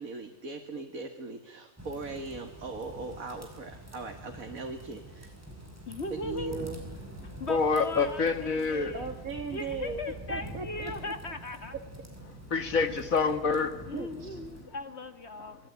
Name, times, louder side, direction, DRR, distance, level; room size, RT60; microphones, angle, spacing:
voice 1, 0.0-5.3 6.1-6.8 8.9-10.0 10.3-11.1 13.9-14.4, right 4 dB, 85° right, 2.5 m, -39 dB
sound 1, 1.8-14.6, right 1 dB, 10° right, 5.9 m, -45 dB
voice 2, 5.9-6.7 7.4-9.1 9.5-11.8 13.9-15.6, left 2 dB, 50° left, 1.8 m, -38 dB
voice 3, 7.5-8.9 12.5-13.9, left 4 dB, 75° left, 2.3 m, -27 dB
27.0 x 20.5 x 9.6 m
omnidirectional pair, 1.4 m